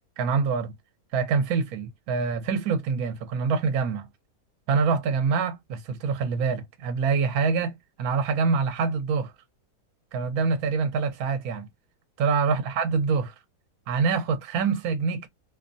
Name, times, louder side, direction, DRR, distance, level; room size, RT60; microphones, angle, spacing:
voice 1, 0.2-0.7 1.1-4.1 4.7-9.3 10.1-11.7 12.2-13.3 13.9-15.3, right 5 dB, 65° right, 1.2 m, -25 dB
2.8 x 2.1 x 2.5 m
omnidirectional pair, 1.8 m